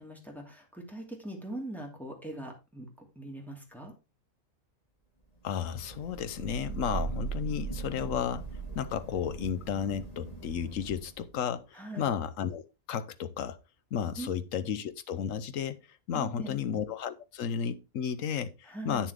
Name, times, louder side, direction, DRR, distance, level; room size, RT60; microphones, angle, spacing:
voice 1, 0.0-2.9 3.2-3.9 11.7-12.1 14.2-14.3 16.1-16.6 18.6-19.1, right 1 dB, ahead, 2.5 m, -41 dB
voice 2, 5.4-8.5 8.7-12.6 12.9-13.6 13.9-15.8 16.1-19.1, left 8 dB, 80° left, 1.2 m, -33 dB
Thunder / Rain, 5.6-11.3, right 5 dB, 30° left, 2.2 m, -39 dB
9.0 x 7.3 x 3.4 m
omnidirectional pair, 1.3 m